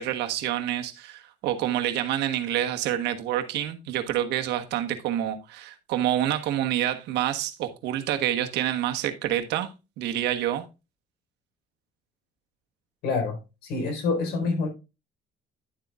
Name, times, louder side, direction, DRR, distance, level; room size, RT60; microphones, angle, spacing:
voice 1, 0.0-9.7 10.0-10.6, right 12 dB, 85° right, 1.3 m, -27 dB
voice 2, 13.0-14.7, left 4 dB, 85° left, 4.6 m, -27 dB
11.0 x 7.7 x 2.4 m
cardioid pair, 110°, 17 cm